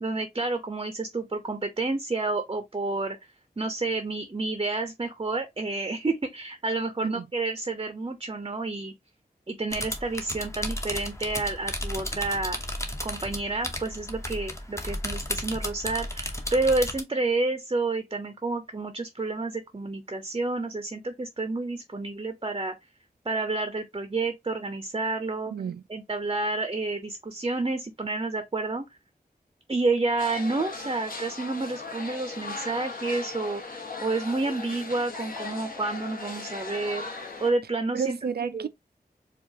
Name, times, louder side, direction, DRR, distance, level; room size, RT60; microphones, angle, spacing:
voice 1, 0.0-3.2 3.6-8.9 9.5-12.6 13.0-22.7 23.3-25.5 25.9-28.9 29.7-33.6 34.0-37.1 37.4-38.2 38.5-38.7, right 3 dB, 30° right, 0.6 m, -29 dB
sound 1, 9.7-17.0, left 1 dB, 15° left, 0.8 m, -34 dB
voice 2, 25.5-25.8 37.9-38.7, right 7 dB, 70° right, 0.4 m, -31 dB
sound 2, 30.2-37.5, left 3 dB, 55° left, 1.3 m, -38 dB
4.6 x 2.4 x 2.8 m
wide cardioid pair, 80°, 17 cm